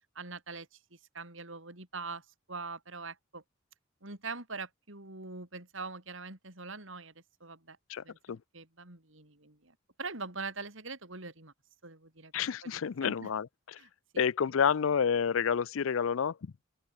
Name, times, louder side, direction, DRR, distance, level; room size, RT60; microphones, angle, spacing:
voice 1, 0.1-3.4 4.0-7.1 7.4-11.5 11.8-13.3 13.8-14.3, right 4 dB, 70° right, 4.2 m, -43 dB
voice 2, 7.9-8.4 12.3-13.8 14.2-16.5, left 7 dB, 75° left, 0.5 m, -29 dB
open air
head